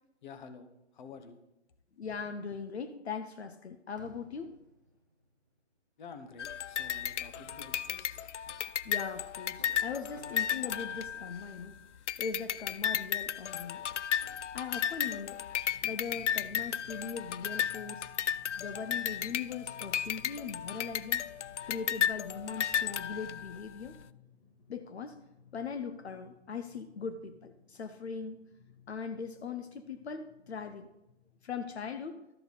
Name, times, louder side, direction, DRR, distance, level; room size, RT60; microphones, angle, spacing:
voice 1, 0.2-1.4 6.0-8.4, left 5 dB, 40° left, 8 dB, 1.1 m, -50 dB
voice 2, 2.0-4.5 8.8-11.8 12.2-13.8 14.5-15.4 15.8-18.1 18.6-21.3 21.7-24.0 24.7-25.2 25.5-28.4 28.9-30.9 31.4-32.2, left 5 dB, 65° left, 9 dB, 0.9 m, -40 dB
Fireworks, 4.0-5.6 6.4-6.5 7.2-12.5 13.6-15.3 15.9-16.4, right 1 dB, 20° right, 0.3 m, -59 dB
sound 1, 6.4-11.6 12.1-23.6, left 9 dB, 80° left, 0.5 m, -34 dB
Drum, 15.6-31.8, left 7 dB, 20° left, 1.0 m, -59 dB
13.0 x 6.8 x 4.1 m, 0.89 s
hypercardioid pair, 150°, 35 cm